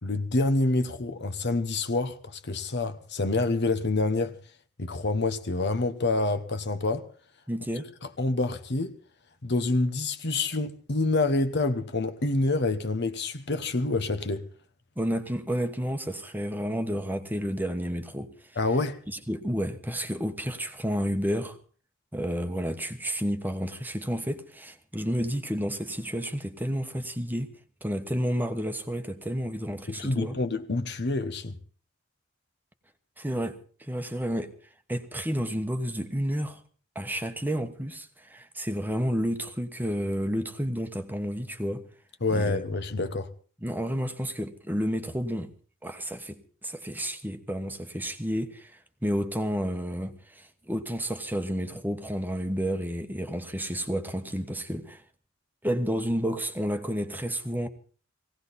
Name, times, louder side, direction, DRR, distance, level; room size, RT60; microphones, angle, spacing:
voice 1, 0.0-4.4 4.8-7.1 8.2-8.9 9.4-14.5 18.6-19.0 29.9-31.6 42.2-43.3, left 2 dB, 60° left, 1.2 m, -27 dB
voice 2, 7.5-7.9 15.0-18.3 19.1-21.6 22.1-27.5 27.8-30.4 33.2-34.5 34.9-36.6 36.9-41.8 42.3-42.6 43.0-43.1 43.6-45.5 45.8-55.0 55.6-57.7, equal, 10° right, 1.1 m, -31 dB
18.5 x 17.0 x 4.2 m
head